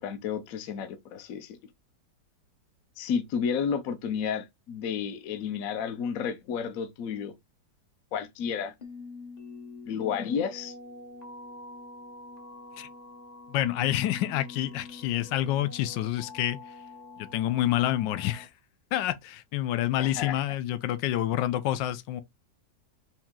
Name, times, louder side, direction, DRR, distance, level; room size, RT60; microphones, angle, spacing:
voice 1, 0.0-1.6 3.0-7.3 8.1-8.7 9.9-10.7 20.0-20.3, left 7 dB, 60° left, 1.0 m, -31 dB
sound 1, 8.8-18.4, left 3 dB, 40° left, 0.6 m, -45 dB
voice 2, 13.5-16.6 17.2-18.5 18.9-22.2, left 13 dB, 85° left, 1.3 m, -28 dB
4.5 x 2.8 x 3.6 m
omnidirectional pair, 1.9 m